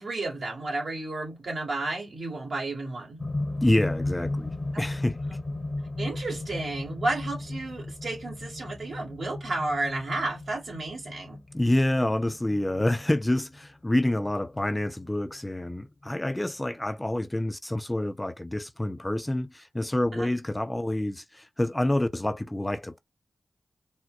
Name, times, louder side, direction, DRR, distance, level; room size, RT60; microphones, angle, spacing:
voice 1, 0.0-3.2 4.7-4.8 5.3-5.4 6.0-11.4 20.1-20.3, right 2 dB, 70° right, 1.6 m, -32 dB
sound 1, 3.2-15.3 16.3-16.4, left 2 dB, 40° left, 0.8 m, -35 dB
voice 2, 3.6-5.2 11.5-23.0, left 1 dB, 15° left, 0.4 m, -27 dB
4.2 x 2.1 x 2.4 m
cardioid pair, 50°, 0 cm